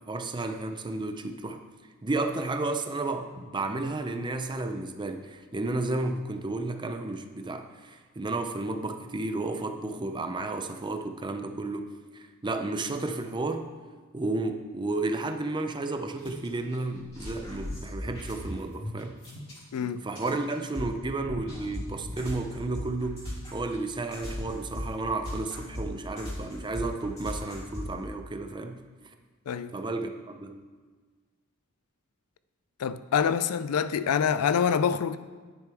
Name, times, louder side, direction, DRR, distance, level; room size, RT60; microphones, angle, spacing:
voice 1, 0.1-1.6 2.0-13.7 14.1-19.2 20.0-28.8 29.7-30.7, right 2 dB, 20° right, 0.6 m, -32 dB
sound 1, 16.2-16.5 16.7-19.8 20.1-28.0, left 1 dB, 30° left, 3.2 m, -38 dB
voice 2, 19.7-20.0 29.5-29.7 32.8-35.2, left 7 dB, 90° left, 0.4 m, -26 dB
10.5 x 9.3 x 3.5 m
head